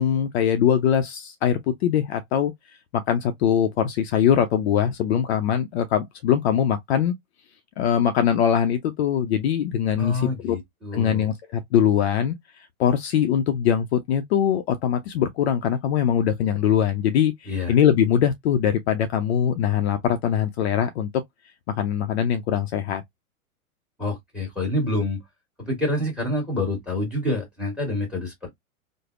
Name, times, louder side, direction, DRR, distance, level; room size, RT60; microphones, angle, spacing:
voice 1, 0.0-2.5 2.9-7.1 7.8-10.6 10.9-12.4 12.8-21.2 21.7-23.0, left 9 dB, 50° left, 0.5 m, -22 dB
voice 2, 10.0-11.3 17.5-17.8 24.0-25.2 25.6-28.5, left 2 dB, ahead, 1.4 m, -27 dB
3.2 x 2.1 x 2.3 m
hypercardioid pair, 115°, 43 cm